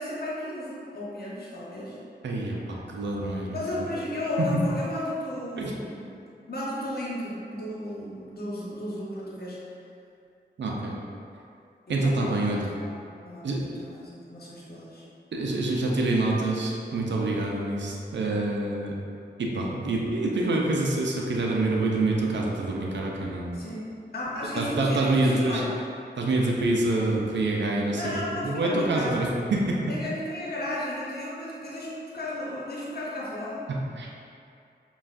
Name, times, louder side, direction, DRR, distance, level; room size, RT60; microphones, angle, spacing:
voice 1, 0.0-2.0 3.5-6.1 6.5-9.6 11.9-12.9 13.2-15.0 23.5-23.8 24.1-25.6 27.9-29.3 29.9-31.9 32.1-33.6, left 1 dB, 60° left, -6 dB, 1.0 m, -34 dB
voice 2, 2.2-2.6 2.9-3.9 4.4-4.5 5.6-5.7 10.6-10.9 11.9-12.7 13.4-13.6 15.3-18.9 19.4-23.6 24.6-25.6 26.2-28.2 28.4-29.8 33.7-34.1, right 2 dB, 80° right, -2 dB, 0.5 m, -26 dB
5.5 x 2.3 x 2.5 m, 2.5 s
cardioid pair, 55°, 18 cm